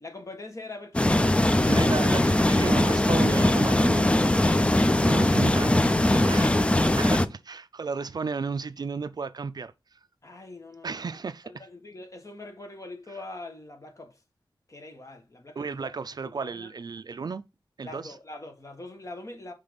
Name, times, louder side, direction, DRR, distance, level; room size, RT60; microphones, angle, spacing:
voice 1, 0.0-1.5 10.2-11.2 11.4-14.2 14.7-15.9 16.2-16.7 17.8-19.5, left 2 dB, 40° left, 1.3 m, -43 dB
sound 1, 0.9-7.3, left 1 dB, 15° left, 0.4 m, -21 dB
voice 2, 1.7-4.2 5.0-10.0 10.8-11.5 15.6-17.4 17.8-18.1, right 5 dB, 55° right, 0.4 m, -34 dB
5.7 x 3.4 x 5.1 m
wide cardioid pair, 85°, 8 cm